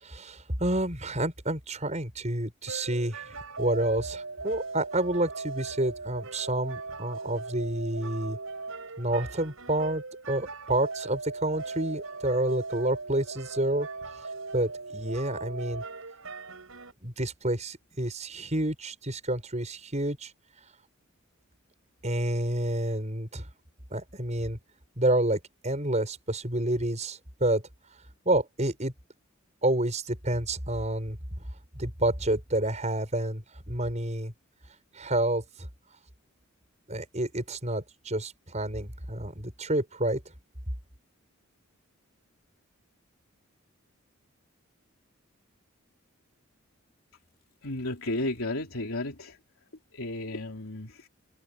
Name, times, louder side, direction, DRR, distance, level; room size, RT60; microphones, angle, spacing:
voice 1, 0.0-8.4 9.0-13.9 14.5-15.8 17.0-20.3 22.0-23.5 23.9-24.6 25.0-27.6 28.3-28.9 29.6-31.2 31.8-34.3 34.9-35.7 36.9-40.2, right 1 dB, 35° right, 6.9 m, -29 dB
sound 1, 2.7-16.9, right 3 dB, 75° right, 5.6 m, -39 dB
voice 2, 47.6-49.4 49.9-51.1, left 2 dB, 85° left, 3.3 m, -33 dB
open air
head